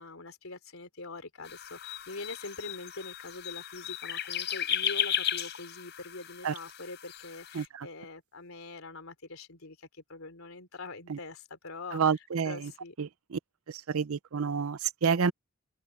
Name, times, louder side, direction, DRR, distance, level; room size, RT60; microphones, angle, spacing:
voice 1, 0.0-12.0 12.4-12.9, left 3 dB, 80° left, 3.6 m, -44 dB
sound 1, 1.4-7.6, left 10 dB, 55° left, 4.0 m, -35 dB
voice 2, 7.5-7.9 11.1-11.2 11.9-12.7 13.0-13.4 13.7-15.3, right 6 dB, 85° right, 0.6 m, -29 dB
open air
head